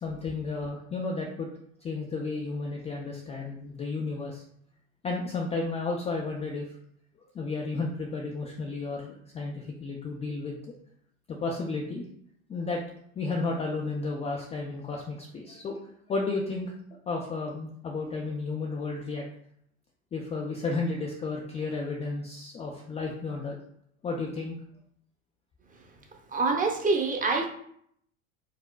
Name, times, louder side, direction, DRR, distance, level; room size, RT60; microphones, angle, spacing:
voice 1, 0.0-1.5 1.8-4.4 5.0-6.6 7.3-10.6 11.3-12.0 12.5-12.8 13.2-15.8 16.1-16.7 17.1-19.2 20.1-23.6 24.0-24.5, left 3 dB, 15° left, -1 dB, 0.4 m, -32 dB
voice 2, 26.3-27.5, right 3 dB, 20° right, 2 dB, 0.8 m, -25 dB
4.8 x 3.6 x 2.2 m, 0.68 s
hypercardioid pair, 90°, 43 cm